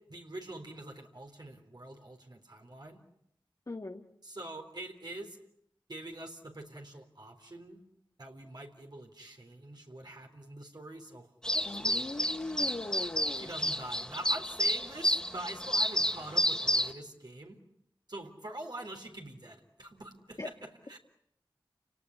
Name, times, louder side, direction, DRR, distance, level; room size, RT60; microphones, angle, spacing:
voice 1, 0.0-3.0 4.2-5.4 5.9-7.8 8.2-12.2 13.4-17.6 18.1-21.0, right 1 dB, 55° right, 2 dB, 3.9 m, -45 dB
voice 2, 3.7-4.0 11.7-13.5 20.4-20.5, left 2 dB, 45° left, 1 dB, 1.7 m, -39 dB
sound 1, 11.4-16.9, equal, 10° left, 2.7 m, -30 dB
29.5 x 18.5 x 10.0 m, 0.75 s
wide cardioid pair, 45°, 9 cm